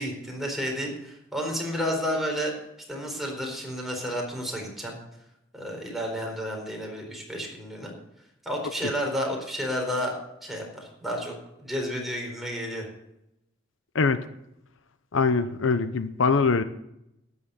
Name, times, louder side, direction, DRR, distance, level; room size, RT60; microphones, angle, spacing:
voice 1, 0.0-2.5 2.9-5.0 5.5-7.9 8.4-10.1 10.4-12.8, equal, ahead, 0 dB, 4.2 m, -31 dB
voice 2, 15.1-16.6, left 4 dB, 75° left, 11 dB, 0.7 m, -23 dB
12.5 x 9.7 x 6.5 m, 0.82 s
head